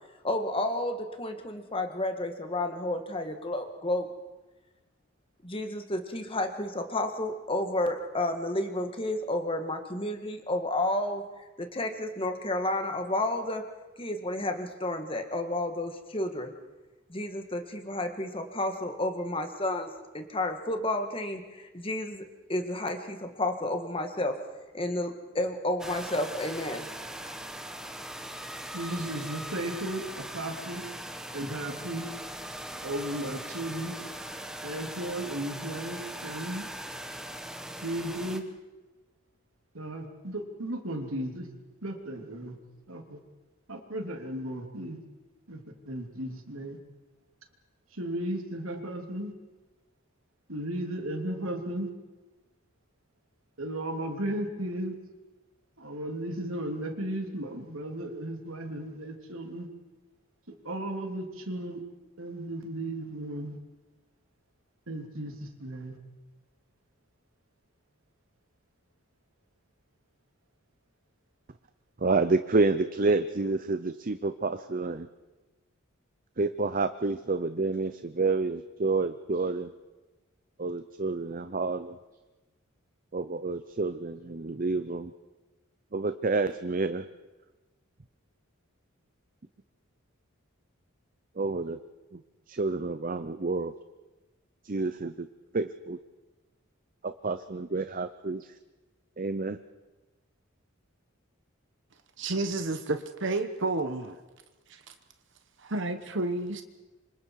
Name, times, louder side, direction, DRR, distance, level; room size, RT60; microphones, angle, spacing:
voice 1, 0.2-4.1 5.4-11.2 11.6-13.6 14.0-16.5 17.1-19.9 20.1-22.2 22.5-24.4 24.7-26.9, left 1 dB, 25° left, 6 dB, 1.9 m, -31 dB
sound 1, 25.8-38.4, right 1 dB, 5° right, 1.2 m, -40 dB
voice 2, 28.7-30.8 31.3-32.1 32.8-33.9 34.6-36.7 37.8-38.5 39.7-41.5 41.8-42.6 42.9-43.2 43.7-45.0 45.5-46.8 47.9-49.3 50.5-51.9 53.6-54.9 55.8-59.7 60.6-61.8 62.2-63.6 64.9-66.0, right 1 dB, 75° right, 4 dB, 3.0 m, -35 dB
voice 3, 72.0-75.1 76.4-79.7 80.6-82.0 83.1-85.1 85.9-87.1 91.4-91.8 92.1-92.2 92.5-93.7 94.6-95.3 95.5-96.0 97.0-98.6 99.2-99.6, right 3 dB, 40° right, 11 dB, 0.6 m, -29 dB
voice 4, 102.2-104.2 104.7-104.9 105.6-106.6, right 2 dB, 60° right, 9 dB, 1.2 m, -31 dB
27.5 x 25.5 x 4.8 m, 1.2 s
head